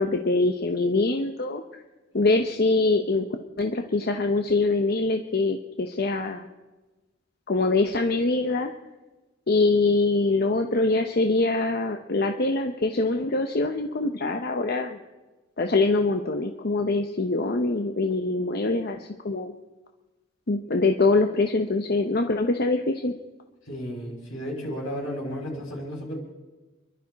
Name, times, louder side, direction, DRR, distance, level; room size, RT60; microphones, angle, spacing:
voice 1, 0.0-1.8 2.1-3.3 3.6-6.5 7.5-8.7 9.5-15.0 15.6-19.5 20.5-23.1, left 3 dB, 50° left, 5 dB, 0.8 m, -24 dB
voice 2, 23.6-26.2, equal, 75° left, -2 dB, 5.7 m, -33 dB
29.5 x 12.0 x 4.1 m, 1.2 s
head